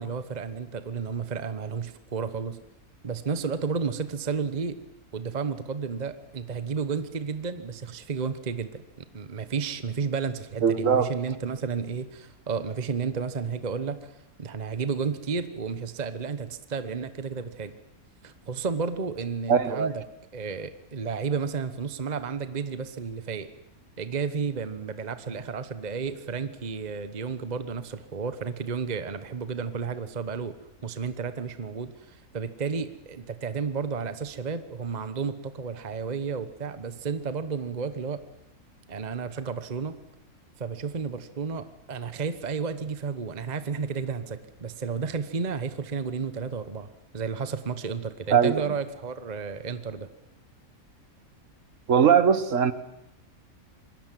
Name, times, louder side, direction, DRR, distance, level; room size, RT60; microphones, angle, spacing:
voice 1, 0.0-2.6 3.0-4.8 5.1-17.7 18.2-20.0 20.3-23.5 24.0-30.5 30.8-38.2 38.9-40.0 40.6-50.1, right 5 dB, 30° right, 12 dB, 1.1 m, -32 dB
voice 2, 10.6-11.1 19.5-19.9 48.3-48.5 51.9-52.7, right 7 dB, 60° right, 14 dB, 1.6 m, -20 dB
27.0 x 21.0 x 7.6 m, 0.84 s
omnidirectional pair, 1.5 m